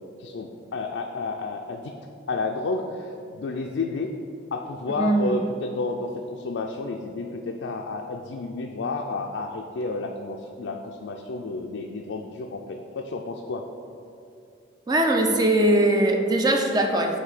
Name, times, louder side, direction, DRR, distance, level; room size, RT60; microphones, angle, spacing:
voice 1, 0.2-2.0 2.3-4.1 4.5-13.7, left 3 dB, 80° left, 2 dB, 0.4 m, -31 dB
voice 2, 5.0-5.3 14.9-17.2, right 1 dB, 20° right, 3 dB, 0.4 m, -21 dB
8.0 x 2.7 x 5.7 m, 2.6 s
head